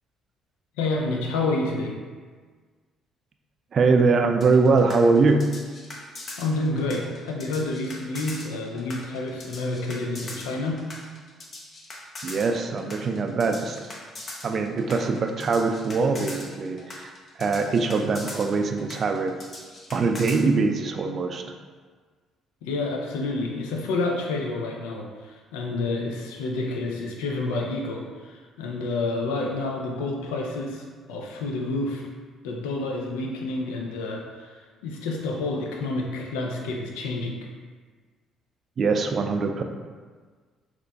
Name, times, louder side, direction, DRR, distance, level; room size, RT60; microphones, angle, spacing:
voice 1, 0.8-2.0 6.4-10.9 22.6-32.0 32.4-37.5, left 2 dB, 75° left, 0 dB, 0.4 m, -29 dB
voice 2, 3.7-5.5 12.2-13.9 14.4-17.1 17.4-19.4 19.9-21.5 38.8-39.6, right 4 dB, 50° right, 5 dB, 0.3 m, -22 dB
Electronic Percussion, 4.4-20.4, left 2 dB, 45° left, 0.7 m, -40 dB
3.9 x 2.9 x 2.2 m, 1.5 s
hypercardioid pair, 50°, 0 cm